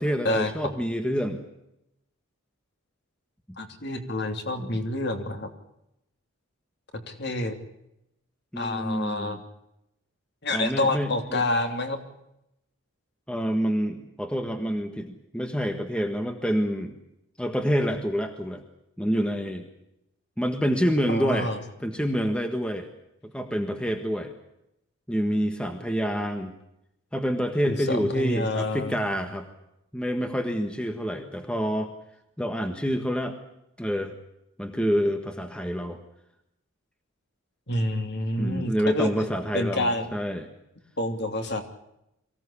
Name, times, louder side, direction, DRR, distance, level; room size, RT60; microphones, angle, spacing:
voice 1, 0.0-1.4 4.6-4.7 8.5-9.4 10.5-11.4 13.3-17.0 17.4-18.6 19.0-19.7 20.4-21.5 21.8-22.9 23.3-24.3 25.1-26.5 27.1-29.5 29.9-31.9 32.4-33.4 33.8-34.1 34.6-36.0 38.4-40.5, equal, 5° left, 6 dB, 1.5 m, -27 dB
voice 2, 3.6-5.5 7.1-7.6 8.6-9.4 10.4-12.0 21.1-21.6 27.6-29.0 37.7-39.1 39.5-40.1 41.0-41.6, left 1 dB, 50° left, 6 dB, 2.9 m, -28 dB
23.5 x 17.0 x 8.5 m, 0.83 s
head